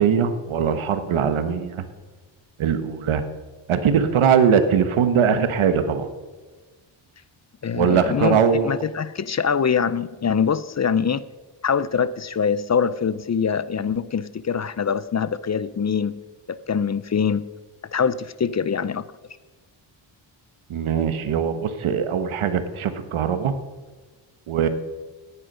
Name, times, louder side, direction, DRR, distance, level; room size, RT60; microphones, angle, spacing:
voice 1, 0.0-1.8 2.6-3.2 3.7-6.1 7.7-8.7 20.7-23.5 24.5-24.7, right 7 dB, 80° right, 10 dB, 1.4 m, -21 dB
voice 2, 7.6-11.2 11.6-16.2 16.5-17.5 17.9-19.0, left 6 dB, 35° left, 17 dB, 0.6 m, -24 dB
17.5 x 9.9 x 5.5 m, 1.3 s
cardioid pair, 85°, 48 cm